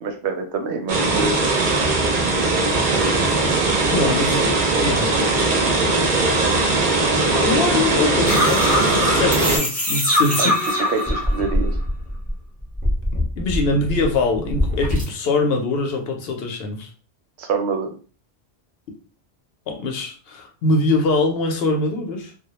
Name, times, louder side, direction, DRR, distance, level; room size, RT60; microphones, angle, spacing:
voice 1, 0.0-1.4 10.4-10.5 10.9-11.7 17.4-17.9, right 4 dB, 80° right, 5 dB, 0.8 m, -25 dB
sound 1, 0.9-9.6, right 3 dB, 55° right, 0.6 m, -19 dB
voice 2, 3.9-4.5 4.8-5.2 7.3-10.6 13.4-16.9 19.7-22.3, left 2 dB, 70° left, 3 dB, 0.8 m, -23 dB
sound 2, 8.3-12.3 12.6-15.0, left 1 dB, 10° left, 0.5 m, -22 dB
2.2 x 2.1 x 2.9 m, 0.37 s
omnidirectional pair, 1.1 m